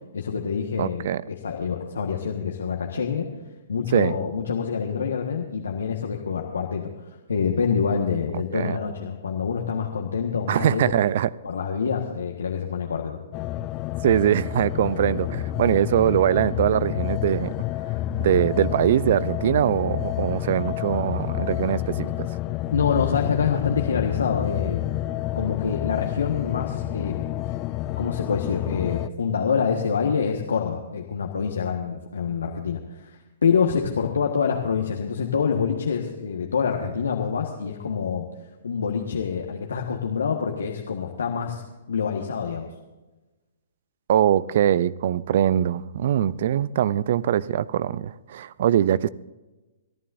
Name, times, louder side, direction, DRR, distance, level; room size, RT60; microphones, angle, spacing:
voice 1, 0.1-3.3 3.7-6.9 7.3-10.9 11.4-13.2 22.7-24.8 25.3-27.2 28.0-38.3 38.6-41.6 41.9-42.7, left 6 dB, 75° left, 1 dB, 1.5 m, -26 dB
voice 2, 0.8-1.2 3.9-4.1 8.3-8.8 10.5-11.3 14.0-17.5 18.2-22.3 44.1-49.1, right 10 dB, 55° right, 20 dB, 0.5 m, -22 dB
sound 1, 13.3-29.1, left 13 dB, 35° left, 0.3 m, -29 dB
27.0 x 11.5 x 2.7 m, 1.1 s
hypercardioid pair, 120°, 0 cm